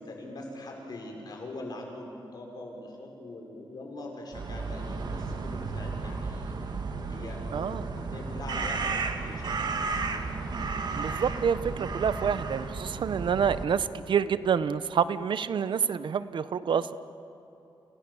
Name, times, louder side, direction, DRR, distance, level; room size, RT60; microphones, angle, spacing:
voice 1, 0.0-6.6 7.1-10.0, left 2 dB, 55° left, 1 dB, 5.7 m, -42 dB
sound 1, 4.3-13.6, right 4 dB, 55° right, 1.8 m, -33 dB
voice 2, 7.5-7.9 11.0-16.9, right 7 dB, 70° right, 14 dB, 0.8 m, -28 dB
30.0 x 28.0 x 7.1 m, 2.8 s
wide cardioid pair, 155°, 8 cm